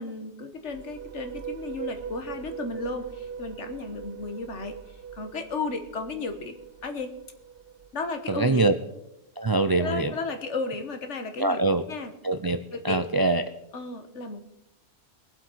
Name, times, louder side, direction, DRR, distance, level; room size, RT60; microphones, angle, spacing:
voice 1, 0.0-6.6 6.8-7.1 7.9-8.7 9.8-11.6 11.9-12.1 12.7-13.0 13.7-14.4, left 3 dB, 75° left, 7 dB, 1.6 m, -34 dB
sound 1, 0.5-8.2, right 8 dB, 60° right, 0.8 m, -41 dB
voice 2, 8.3-8.7 9.4-10.1 11.4-11.8 12.2-13.4, right 2 dB, 35° right, 9 dB, 0.3 m, -24 dB
22.0 x 7.7 x 4.6 m, 0.84 s
omnidirectional pair, 1.2 m